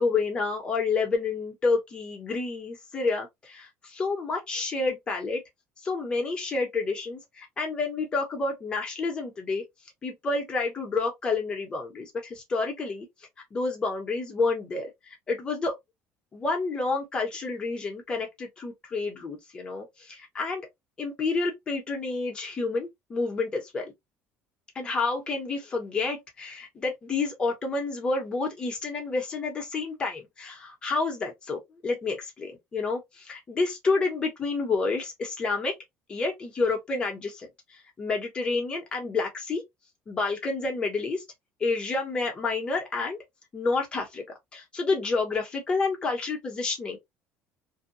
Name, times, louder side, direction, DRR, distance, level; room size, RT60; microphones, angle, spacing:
voice 1, 0.0-5.4 5.8-9.6 10.0-13.1 13.5-15.7 16.3-20.7 21.0-23.9 24.7-35.7 36.1-37.5 38.0-39.6 40.1-41.2 41.6-43.2 43.5-44.2 44.5-47.0, left 3 dB, 20° left, 0.9 m, -29 dB
2.7 x 2.2 x 2.6 m
cardioid pair, 175°, 5 cm